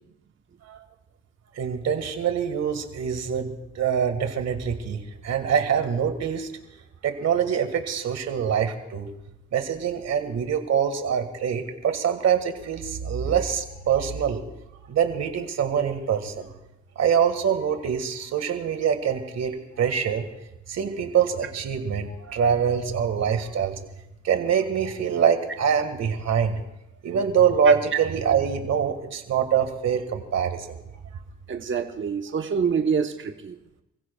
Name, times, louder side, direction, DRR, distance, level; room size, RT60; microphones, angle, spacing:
voice 1, 1.6-6.5 7.0-9.1 9.5-14.4 14.9-16.5 17.0-20.3 20.7-23.8 24.2-26.6 27.0-30.8, right 7 dB, 60° right, 7 dB, 1.9 m, -24 dB
voice 2, 31.5-33.6, right 6 dB, 40° right, 5 dB, 1.2 m, -26 dB
28.5 x 15.5 x 2.4 m, 0.91 s
cardioid pair, 90°, 30 cm